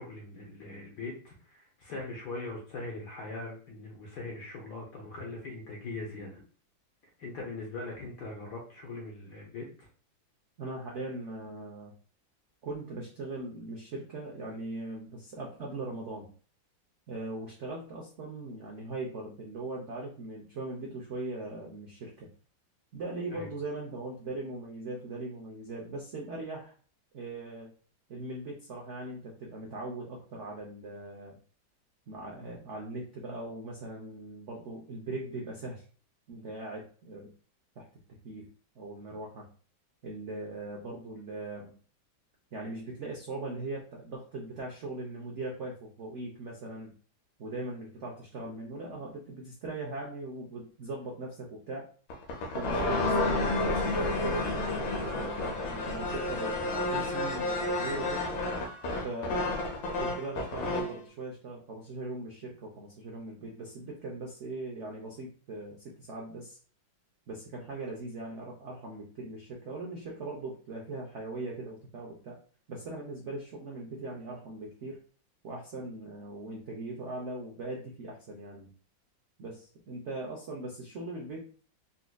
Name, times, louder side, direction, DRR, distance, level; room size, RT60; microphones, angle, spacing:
voice 1, 0.0-6.4 7.2-9.9 23.3-23.5, left 3 dB, 65° left, -2 dB, 1.2 m, -41 dB
voice 2, 10.6-11.9 12.6-16.3 17.1-22.3 22.9-26.7 27.1-27.7 28.1-31.4 32.1-35.8 36.3-37.3 37.8-37.9 38.2-38.4 38.8-39.5 40.0-41.7 42.5-46.9 47.4-51.9 52.5-58.3 59.0-59.6 60.0-66.6 67.3-72.4 72.7-75.0 75.4-78.7 79.4-81.4, right 2 dB, 75° right, -2 dB, 0.6 m, -40 dB
sound 1, 52.1-61.0, left 2 dB, 85° left, 1.5 m, -30 dB
4.0 x 2.5 x 2.2 m, 0.40 s
omnidirectional pair, 2.1 m